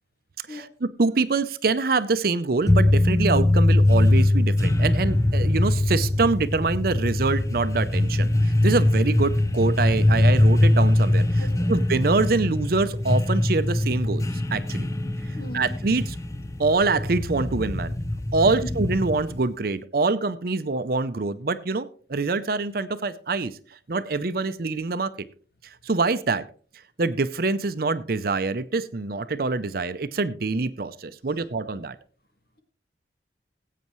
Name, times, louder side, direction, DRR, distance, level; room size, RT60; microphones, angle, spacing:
voice 1, 0.5-14.9 15.5-16.2 16.6-17.9 18.3-23.6 23.9-25.1 25.6-26.4 27.0-32.0, right 3 dB, 55° right, 0.6 m, -25 dB
sound 1, 2.7-19.5, left 1 dB, 15° left, 0.6 m, -22 dB
voice 2, 11.4-11.8 15.3-15.7 18.5-18.7, left 1 dB, 55° left, 2.0 m, -38 dB
19.0 x 8.4 x 3.1 m
head